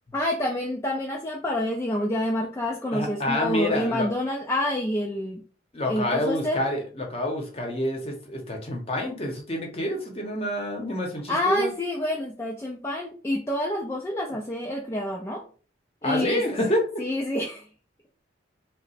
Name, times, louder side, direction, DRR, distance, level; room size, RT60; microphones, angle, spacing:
voice 1, 0.1-5.4 5.8-6.6 11.3-15.4 16.0-16.4 17.0-17.7, left 1 dB, 15° left, -1 dB, 0.3 m, -28 dB
voice 2, 2.9-4.1 5.7-11.7 16.0-17.0, left 1 dB, 30° left, 1 dB, 0.7 m, -28 dB
2.8 x 2.1 x 4.1 m, 0.40 s
head